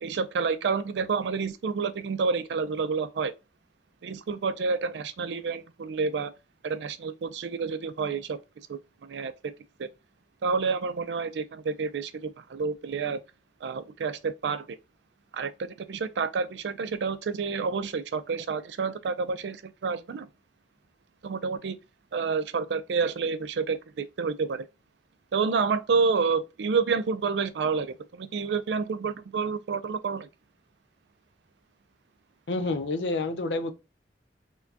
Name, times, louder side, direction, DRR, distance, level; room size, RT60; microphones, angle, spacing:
voice 1, 0.0-3.3 4.0-6.3 6.6-8.4 8.7-9.3 9.8-9.9 10.4-13.2 13.6-14.8 15.3-20.3 21.2-21.8 22.1-24.7 25.3-30.3, right 5 dB, 75° right, 0.4 m, -29 dB
voice 2, 32.5-33.7, left 2 dB, 85° left, 0.6 m, -28 dB
4.3 x 2.2 x 2.7 m
head